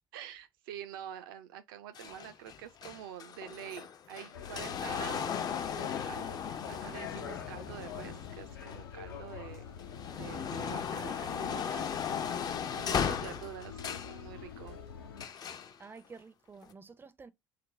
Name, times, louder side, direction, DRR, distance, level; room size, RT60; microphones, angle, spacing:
voice 1, 0.1-5.4 5.8-9.7 10.1-14.8, right 10 dB, 65° right, 0.5 m, -47 dB
sound 1, 2.0-9.2 9.6-14.2 15.2-15.7 16.6-16.7, left 7 dB, 35° left, 0.5 m, -37 dB
sound 2, 4.3-15.3, left 8 dB, 70° left, 0.7 m, -45 dB
voice 2, 15.8-17.3, right 4 dB, 15° right, 0.5 m, -50 dB
4.1 x 2.1 x 3.6 m
figure-of-eight pair, 60°, 12 cm